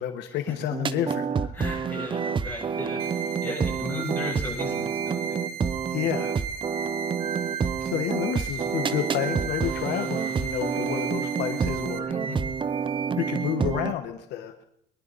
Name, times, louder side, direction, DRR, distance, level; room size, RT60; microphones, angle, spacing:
voice 1, 0.0-1.6 5.9-6.4 7.8-12.1 13.2-14.5, left 10 dB, 85° left, 6 dB, 1.3 m, -30 dB
sound 1, 0.7-13.9, right 6 dB, 30° right, 0.6 m, -28 dB
voice 2, 1.5-3.0 3.4-5.4 10.8-10.9 12.1-12.4, left 2 dB, 10° left, -3 dB, 7.3 m, -35 dB
sound 2, 3.0-12.0, right 10 dB, 65° right, 0.9 m, -39 dB
22.5 x 11.0 x 4.1 m, 0.74 s
cardioid pair, 110°, 17 cm